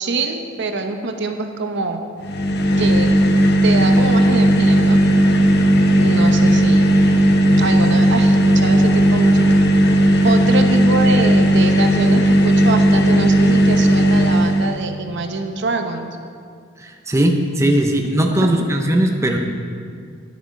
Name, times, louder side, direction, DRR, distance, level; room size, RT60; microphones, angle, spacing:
voice 1, 0.0-2.0 2.8-3.2 3.6-5.0 6.0-6.9 7.6-9.6 10.2-16.1, right 3 dB, 60° right, 6 dB, 0.8 m, -24 dB
sound 1, 2.2-14.8, equal, 55° left, 0.8 m, -15 dB
voice 2, 16.8-19.4, right 1 dB, 15° right, 3 dB, 0.7 m, -18 dB
10.0 x 9.7 x 5.2 m, 2.2 s
head